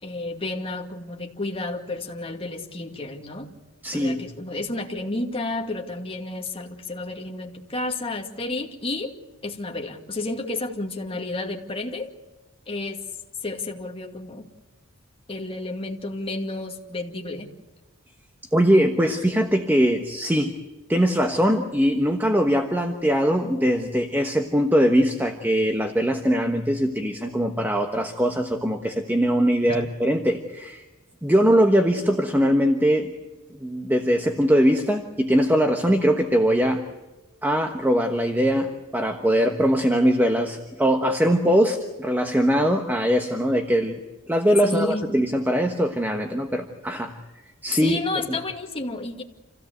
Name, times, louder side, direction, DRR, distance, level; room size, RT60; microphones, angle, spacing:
voice 1, 0.0-3.5 3.9-9.1 9.4-12.1 12.7-13.0 13.4-14.5 15.3-17.5 19.8-20.0 29.7-29.8 44.6-45.1 47.8-49.2, left 2 dB, 25° left, 2 dB, 2.4 m, -31 dB
voice 2, 3.8-4.2 18.5-20.5 20.9-30.8 31.2-33.1 33.5-36.9 37.4-44.0 44.3-47.2 47.6-48.0 48.3-48.4, equal, 10° right, 5 dB, 1.2 m, -21 dB
28.0 x 16.5 x 8.0 m, 1.1 s
head